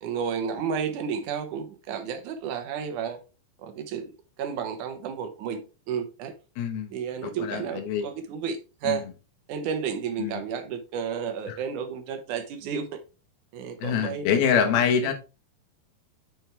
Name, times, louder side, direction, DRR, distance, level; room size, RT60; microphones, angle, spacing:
voice 1, 0.0-3.2 3.6-4.1 4.4-5.6 5.9-6.3 6.9-9.0 9.5-13.0 13.5-14.8, right 7 dB, 70° right, 2.1 m, -32 dB
voice 2, 6.6-7.0 7.2-8.1 8.8-9.1 10.2-10.4 11.5-11.6 13.8-15.1, left 7 dB, 80° left, 3.0 m, -25 dB
7.6 x 6.1 x 3.4 m
omnidirectional pair, 4.4 m